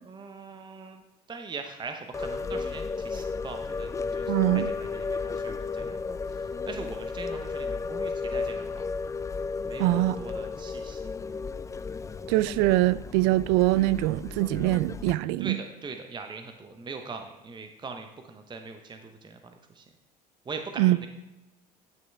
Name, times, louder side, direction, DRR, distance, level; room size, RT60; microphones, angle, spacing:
voice 1, 0.1-1.0 1.3-6.2 6.6-8.7 9.7-11.0 15.4-19.8 20.5-21.1, right 4 dB, 20° right, 0.8 m, -41 dB
sound 1, 2.1-15.2, left 4 dB, 15° left, 0.4 m, -34 dB
voice 2, 4.3-4.7 9.8-10.2 12.3-15.6 20.8-21.0, right 17 dB, 65° right, 0.4 m, -23 dB
10.5 x 6.1 x 3.4 m
hypercardioid pair, 70°, 21 cm